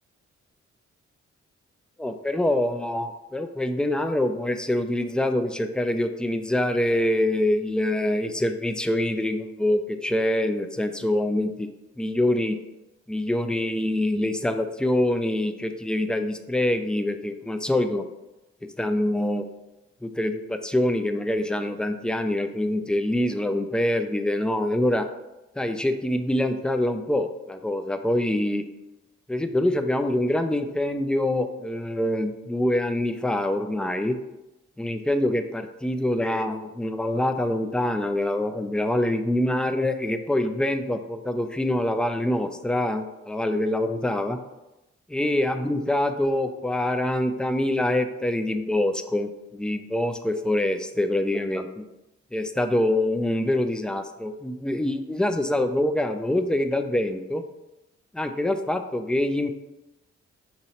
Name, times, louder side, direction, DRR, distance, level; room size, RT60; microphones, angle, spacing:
voice 1, 2.0-11.7 12.0-12.6 13.1-18.0 18.8-19.5 20.0-25.1 25.5-28.7 29.3-34.2 34.8-44.4 45.1-51.9 52.3-57.4 58.1-59.5, left 1 dB, 5° left, 8 dB, 0.3 m, -25 dB
3.0 x 2.7 x 4.1 m, 0.98 s
supercardioid pair, 45°, 30 cm